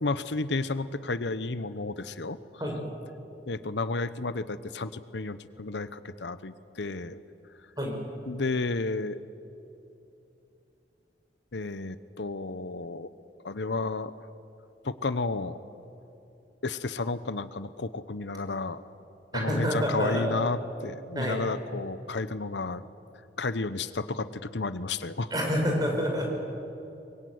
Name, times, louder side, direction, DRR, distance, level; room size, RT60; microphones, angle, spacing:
voice 1, 0.0-2.4 3.5-7.2 8.3-9.2 11.5-13.1 13.4-14.1 14.8-15.6 16.6-18.8 19.3-22.9 23.4-25.3, left 3 dB, 85° left, 14 dB, 0.9 m, -32 dB
voice 2, 19.3-20.4 21.2-21.4 25.3-26.3, equal, 25° right, 0 dB, 5.6 m, -27 dB
23.0 x 22.5 x 9.5 m, 2.8 s
head